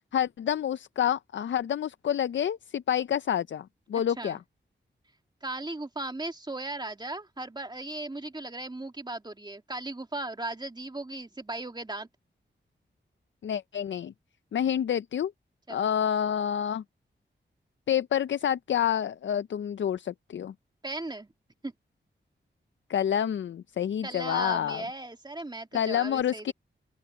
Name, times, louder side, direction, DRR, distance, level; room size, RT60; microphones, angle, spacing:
voice 1, 0.1-4.4 13.4-14.1 14.5-15.3 15.7-16.8 17.9-20.5 22.9-24.8 25.7-26.5, left 9 dB, 75° left, 0.5 m, -28 dB
voice 2, 5.4-12.1 15.7-15.9 20.8-21.3 21.6-21.7 24.0-26.5, right 2 dB, 20° right, 2.3 m, -37 dB
open air
wide cardioid pair, 75°, 19 cm